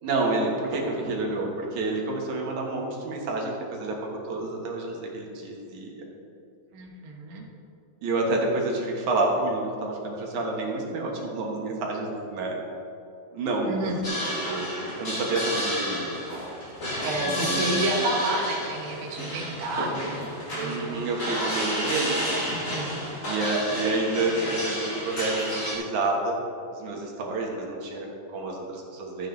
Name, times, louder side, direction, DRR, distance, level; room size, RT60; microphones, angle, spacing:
voice 1, 0.0-6.1 8.0-12.6 13.3-16.1 17.2-18.1 20.6-22.6 22.9-26.4 26.7-29.3, right 2 dB, 80° right, -1 dB, 2.9 m, -29 dB
voice 2, 6.7-7.4 13.6-14.0 17.0-21.0 22.5-22.9, right 2 dB, 50° right, -2 dB, 2.0 m, -30 dB
sound 1, 14.0-25.7, equal, 25° left, 2.7 m, -31 dB
13.5 x 9.0 x 4.0 m, 2.7 s
omnidirectional pair, 3.4 m